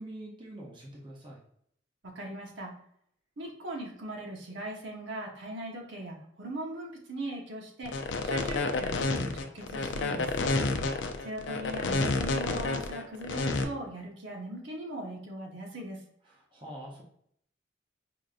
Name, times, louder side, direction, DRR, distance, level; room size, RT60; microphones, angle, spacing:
voice 1, 0.0-1.4 10.7-10.9 16.3-17.0, right 1 dB, 25° right, -3 dB, 0.7 m, -44 dB
voice 2, 2.0-2.7 3.4-8.0 8.2-10.3 11.2-16.0, right 1 dB, 80° right, 0 dB, 0.9 m, -39 dB
sound 1, 7.8-13.6, left 3 dB, 75° left, 0.4 m, -29 dB
4.9 x 2.6 x 2.4 m, 0.68 s
head